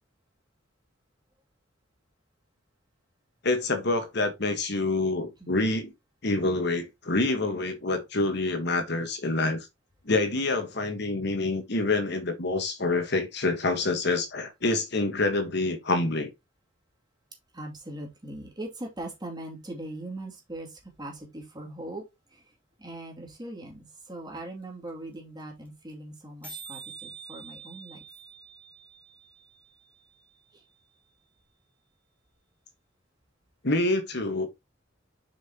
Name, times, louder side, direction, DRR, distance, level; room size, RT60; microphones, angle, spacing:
voice 1, 3.4-5.9 6.2-9.7 10.1-16.3 33.6-34.5, left 2 dB, 60° left, 1.3 m, -27 dB
voice 2, 17.5-22.0 22.3-22.4 22.8-28.0 30.5-30.6, right 1 dB, 20° right, 2.6 m, -40 dB
sound 1, 24.4-24.5 24.6-24.7 24.9-25.1 25.4-25.5 25.7-25.9 26.2-26.3 26.4-30.4, right 5 dB, 10° left, 2.8 m, -46 dB
7.2 x 5.6 x 2.9 m
head